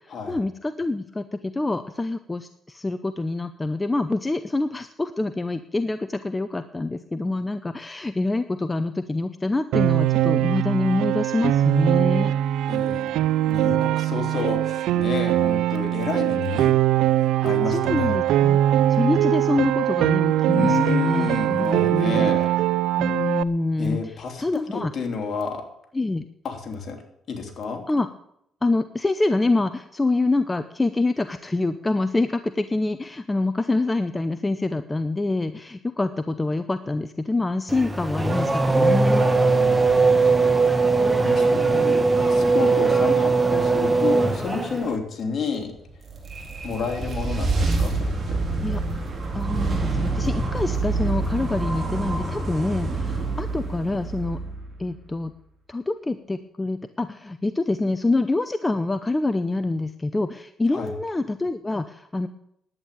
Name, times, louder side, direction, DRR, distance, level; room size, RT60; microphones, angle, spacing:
voice 1, 0.0-12.3 17.7-18.6 18.9-22.3 23.0-24.0 24.4-24.9 25.9-26.3 27.9-28.1 28.6-39.3 48.6-48.8 49.3-54.4 54.8-55.3 55.7-62.3, left 2 dB, 20° left, 10 dB, 0.7 m, -26 dB
Piano, 9.7-23.4, right 13 dB, 90° right, 0.5 m, -22 dB
voice 2, 12.7-13.1 13.5-16.7 17.1-18.2 20.5-22.5 23.8-25.6 26.4-27.0 27.3-27.8 39.3-40.0 41.2-45.7 46.6-48.4 60.7-60.9, left 5 dB, 50° left, 2 dB, 3.4 m, -30 dB
Race car auto racing / Accelerating revving vroom, 37.7-45.0, right 3 dB, 15° right, 1.5 m, -20 dB
sound 1, 45.9-55.1, right 3 dB, 35° right, 4.0 m, -27 dB
11.0 x 9.2 x 8.5 m, 0.76 s
cardioid pair, 90°, 0 cm